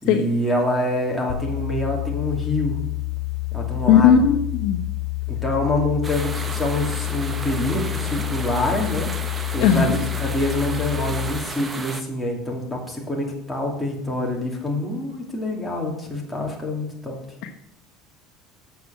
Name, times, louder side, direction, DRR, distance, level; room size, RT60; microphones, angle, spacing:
voice 1, 0.0-2.8 3.5-4.2 5.3-9.1 9.5-17.2, left 1 dB, 5° left, -2 dB, 2.7 m, -26 dB
sound 1, 1.3-11.3, left 23 dB, 80° left, 0.8 m, -28 dB
voice 2, 3.9-4.8 9.6-10.0 17.4-17.5, left 8 dB, 65° left, 3 dB, 1.3 m, -17 dB
sound 2, 6.0-12.0, right 3 dB, 15° right, 0.9 m, -33 dB
8.4 x 7.0 x 7.4 m, 0.76 s
cardioid pair, 130°, 0 cm